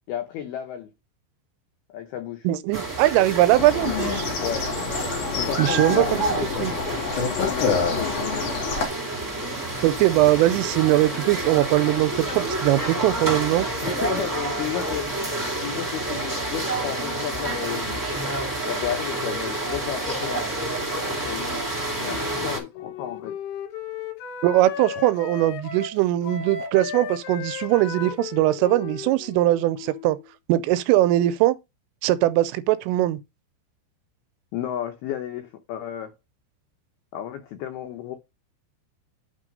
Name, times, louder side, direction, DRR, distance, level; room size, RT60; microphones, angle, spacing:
voice 1, 0.1-0.9 1.9-2.5 4.4-4.7 5.3-6.7 7.2-8.1 13.8-15.1 15.6-18.0 18.7-20.5 21.1-21.6 22.0-23.4 34.5-36.1 37.1-38.2, left 10 dB, 85° left, 2.2 m, -32 dB
voice 2, 2.4-4.3 5.6-6.0 6.6-6.7 9.8-13.7 24.4-30.2 30.5-31.6 32.0-33.2, right 15 dB, 85° right, 3.2 m, -21 dB
sound 1, 2.7-22.6, right 2 dB, 15° right, 0.6 m, -29 dB
sound 2, 3.5-8.9, left 5 dB, 50° left, 3.0 m, -27 dB
Wind instrument woodwind instrument, 22.2-30.2, left 8 dB, 65° left, 3.2 m, -36 dB
8.9 x 3.5 x 5.3 m
omnidirectional pair, 5.9 m